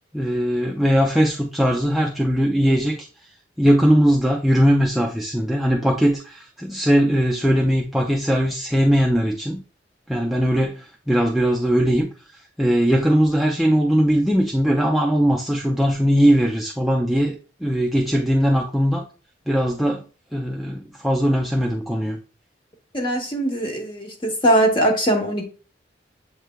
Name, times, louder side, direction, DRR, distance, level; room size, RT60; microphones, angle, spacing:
voice 1, 0.1-3.1 3.6-9.6 10.1-12.1 12.6-19.1 19.5-20.0 20.3-22.2, equal, ahead, -2 dB, 0.4 m, -20 dB
voice 2, 22.9-25.5, right 1 dB, 25° left, 3 dB, 0.9 m, -21 dB
7.3 x 3.2 x 2.2 m, 0.36 s
head